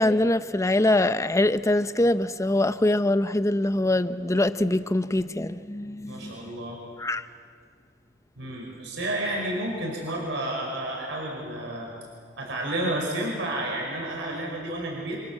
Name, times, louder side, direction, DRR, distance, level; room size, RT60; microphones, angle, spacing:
voice 1, 0.0-6.3 7.0-7.2, left 1 dB, 15° left, 0.7 m, -23 dB
voice 2, 6.0-6.8 8.4-11.9 12.4-15.2, right 1 dB, 70° right, 5.6 m, -31 dB
28.5 x 26.0 x 7.6 m
head